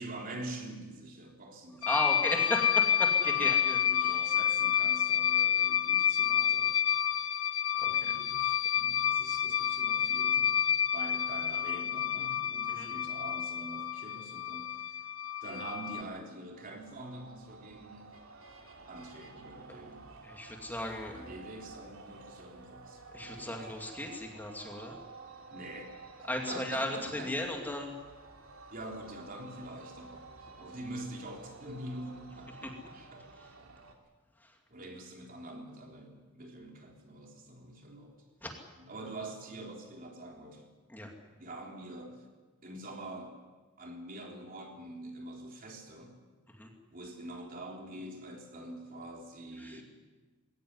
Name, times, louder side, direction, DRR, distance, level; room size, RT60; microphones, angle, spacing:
voice 1, 0.0-1.9 3.3-6.8 7.8-15.1 15.4-18.1 18.9-20.1 21.1-23.7 25.5-25.9 26.2-27.3 28.7-33.2 34.7-38.2 38.8-40.7 41.3-42.3 42.6-43.4 43.8-46.2 46.9-49.8, right 1 dB, 45° right, 1 dB, 3.7 m, -45 dB
voice 2, 1.7-4.2 7.8-8.1 12.7-12.9 20.2-21.2 23.1-25.0 26.3-28.0 32.6-32.7 33.4-33.5 34.4-34.6 38.4-38.5 40.9-41.1 46.5-46.7 49.6-49.8, left 1 dB, 10° left, 1 dB, 2.5 m, -36 dB
sound 1, 1.8-16.0, left 9 dB, 80° left, 1.0 m, -29 dB
sound 2, 16.5-33.9, right 3 dB, 85° right, 2.9 m, -52 dB
21.5 x 17.5 x 9.7 m, 1.3 s
head